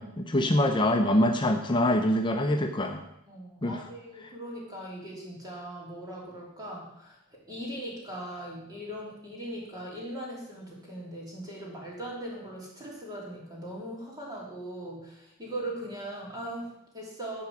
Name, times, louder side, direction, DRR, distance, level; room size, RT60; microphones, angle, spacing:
voice 1, 0.0-3.0 3.6-3.8, left 1 dB, 20° left, 5 dB, 0.6 m, -24 dB
voice 2, 3.3-7.2 7.5-17.4, right 1 dB, 20° right, -4 dB, 3.3 m, -39 dB
11.0 x 4.8 x 7.1 m, 0.82 s
head